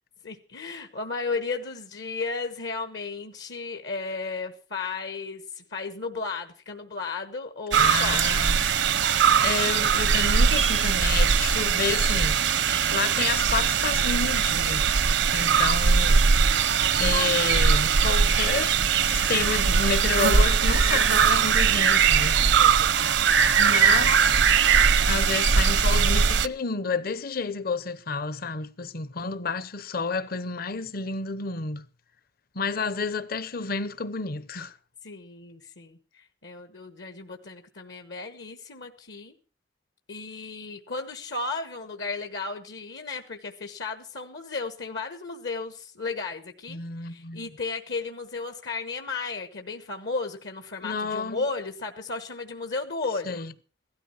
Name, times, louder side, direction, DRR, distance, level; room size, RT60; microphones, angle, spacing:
voice 1, 0.2-8.4 15.4-15.6 22.2-23.1 29.2-29.4 35.0-39.3 40.1-53.4, left 4 dB, 70° left, 1.2 m, -34 dB
sound 1, 7.7-26.5, right 6 dB, 75° right, 0.7 m, -21 dB
voice 2, 7.8-8.8 9.4-16.2 17.0-22.7 23.6-24.4 25.1-31.9 32.5-34.7 46.7-47.4 50.8-51.4 53.3-53.5, left 4 dB, 55° left, 0.8 m, -30 dB
16.0 x 13.0 x 5.6 m
head